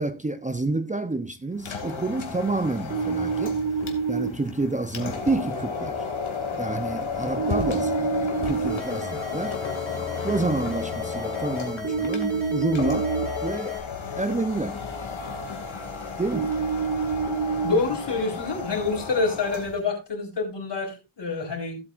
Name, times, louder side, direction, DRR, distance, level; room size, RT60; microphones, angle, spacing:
voice 1, 0.0-3.6 4.1-6.0 6.6-8.1 8.4-9.6 10.2-13.1 13.4-13.8 14.2-14.8 16.2-16.5, right 2 dB, 15° right, 0.6 m, -28 dB
sound 1, 1.6-19.8, left 5 dB, 90° left, 2.4 m, -33 dB
sound 2, 2.9-4.3 7.4-8.8 11.8-13.2 16.3-17.7, right 5 dB, 40° right, 2.2 m, -27 dB
sound 3, 8.7-13.8, left 4 dB, ahead, 3.4 m, -36 dB
voice 2, 17.6-21.8, left 3 dB, 60° left, 4.3 m, -27 dB
16.5 x 8.2 x 2.5 m
wide cardioid pair, 145°, 46 cm